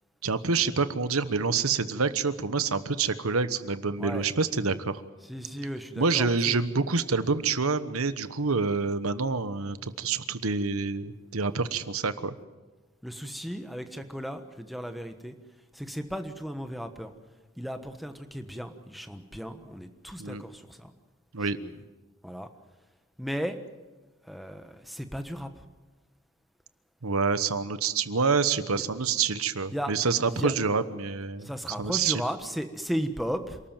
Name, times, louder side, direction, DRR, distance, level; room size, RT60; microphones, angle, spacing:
voice 1, 0.2-5.0 6.0-12.3 20.2-20.4 21.3-21.6 27.0-31.5 31.8-32.2, right 4 dB, 85° right, 13 dB, 1.2 m, -27 dB
voice 2, 5.3-6.5 13.0-15.3 15.7-17.1 17.6-20.9 21.4-21.7 22.2-22.5 23.2-23.6 24.3-25.5 28.8-28.9 29.7-29.9 30.3-30.5 31.4-33.6, equal, ahead, 7 dB, 1.2 m, -35 dB
28.0 x 13.5 x 9.1 m, 1.2 s
head